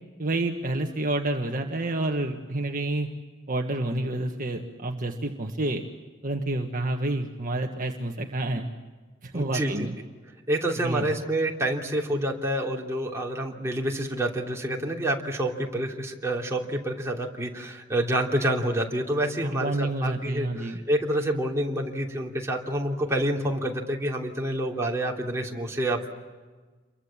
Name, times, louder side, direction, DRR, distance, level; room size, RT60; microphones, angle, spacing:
voice 1, 0.2-3.1 3.5-5.8 6.2-8.7 9.2-9.9 10.8-11.1 19.4-20.8, right 2 dB, 45° right, 3 dB, 1.6 m, -29 dB
voice 2, 9.3-9.9 10.5-26.1, right 1 dB, 15° right, -1 dB, 3.2 m, -28 dB
29.0 x 23.5 x 7.4 m, 1.4 s
head